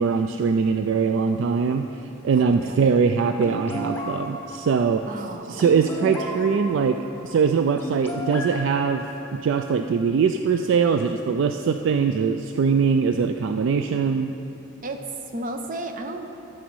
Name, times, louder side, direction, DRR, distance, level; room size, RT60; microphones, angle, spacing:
voice 1, 0.0-1.8 2.2-5.0 5.5-7.0 7.2-9.0 9.4-14.3, right 5 dB, 65° right, 7 dB, 0.3 m, -22 dB
voice 2, 2.4-3.1 5.1-5.7 14.8-15.0 15.3-16.3, right 2 dB, 40° right, 5 dB, 0.7 m, -34 dB
sound 1, 3.4-9.6, equal, 10° left, 0.9 m, -34 dB
13.0 x 6.2 x 4.7 m, 2.8 s
head